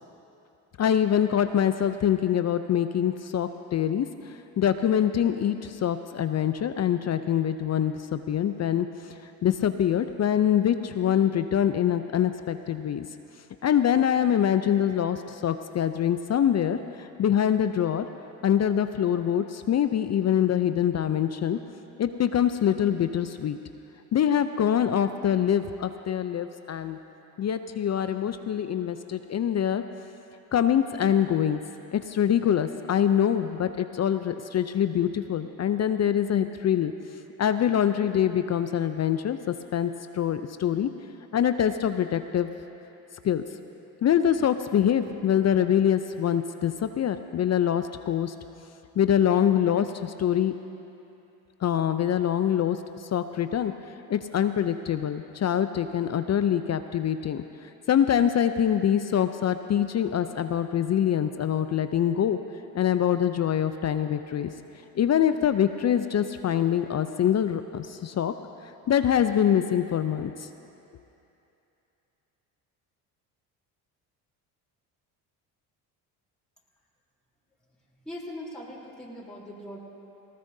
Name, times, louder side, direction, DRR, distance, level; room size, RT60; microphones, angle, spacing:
voice 1, 0.8-9.1 9.4-13.1 13.6-18.1 18.4-21.6 22.0-23.6 24.1-27.0 27.4-29.8 30.5-31.6 31.9-36.9 37.4-40.9 41.3-42.5 43.2-43.4 44.0-48.3 49.0-50.5 51.6-53.7 54.1-57.4 57.9-62.4 62.7-64.5 64.9-68.3 68.9-70.5, left 9 dB, 35° left, 10 dB, 0.5 m, -24 dB
voice 2, 78.0-79.8, left 1 dB, ahead, -7 dB, 3.5 m, -40 dB
19.0 x 18.5 x 2.7 m, 2.9 s
hypercardioid pair, 65°, 46 cm